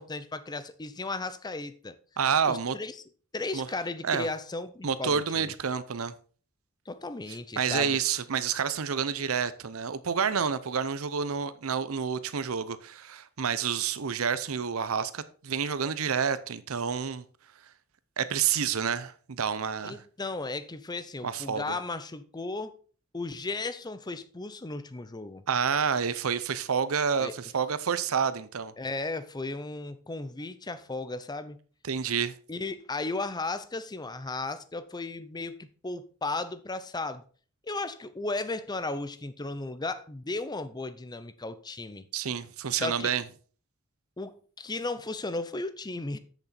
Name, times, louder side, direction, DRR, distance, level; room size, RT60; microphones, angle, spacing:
voice 1, 0.0-2.0 2.5-3.0 3.3-5.5 6.9-8.0 19.8-22.8 23.1-25.4 27.2-27.3 28.8-31.6 32.5-37.2 37.6-42.1 42.7-43.2 44.2-46.2, left 3 dB, 20° left, 0.6 m, -35 dB
voice 2, 2.2-2.7 3.5-3.7 4.0-4.3 4.8-6.1 7.6-17.2 18.2-20.0 21.2-21.8 25.5-28.7 31.8-32.3 42.1-43.2, right 6 dB, 75° right, 0.7 m, -29 dB
8.2 x 6.8 x 4.2 m
head